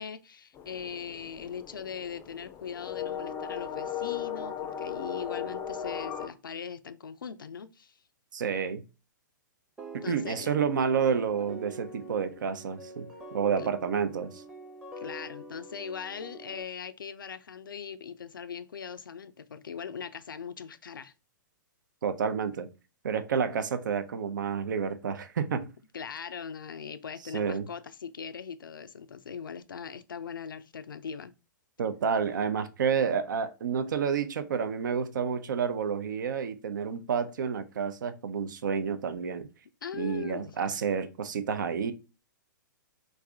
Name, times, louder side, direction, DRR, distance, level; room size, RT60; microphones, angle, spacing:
voice 1, 0.0-8.0 10.0-10.5 13.6-13.7 15.0-21.1 25.9-31.3 39.8-40.6, left 7 dB, 80° left, 0.4 m, -40 dB
sound 1, 0.5-6.3, left 8 dB, 25° left, 0.4 m, -37 dB
voice 2, 8.3-8.8 9.9-14.4 22.0-22.7 23.0-25.7 27.3-27.7 31.8-39.5 39.9-41.9, right 6 dB, 70° right, 0.5 m, -29 dB
sound 2, 9.8-16.6, right 1 dB, 10° right, 0.7 m, -46 dB
3.3 x 2.5 x 3.4 m
hypercardioid pair, 120°, 11 cm